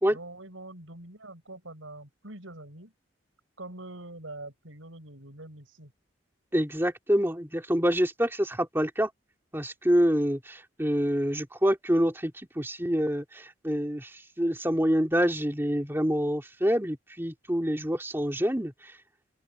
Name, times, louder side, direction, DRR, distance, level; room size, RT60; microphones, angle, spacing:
voice 1, 0.1-2.9 3.6-5.9, right 2 dB, 80° right, 7.1 m, -44 dB
voice 2, 6.5-9.1 9.5-14.1 14.4-18.7, equal, 10° right, 2.5 m, -26 dB
open air
head